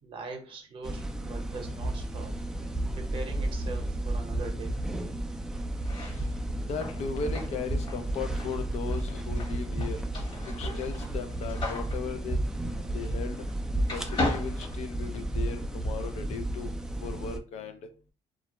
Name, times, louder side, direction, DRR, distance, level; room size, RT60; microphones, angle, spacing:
voice 1, 0.0-2.4 2.9-4.7, right 3 dB, 45° right, 4 dB, 0.7 m, -41 dB
sound 1, 0.8-17.4, right 1 dB, 5° right, 0.3 m, -33 dB
sound 2, 5.7-13.6 13.8-15.5, left 2 dB, 40° left, 1.0 m, -37 dB
voice 2, 6.7-10.0 10.5-12.4 12.9-13.4 13.9-16.7 17.0-17.8, left 5 dB, 60° left, 8 dB, 0.4 m, -37 dB
2.3 x 2.1 x 2.9 m, 0.36 s
cardioid pair, 120°, 12 cm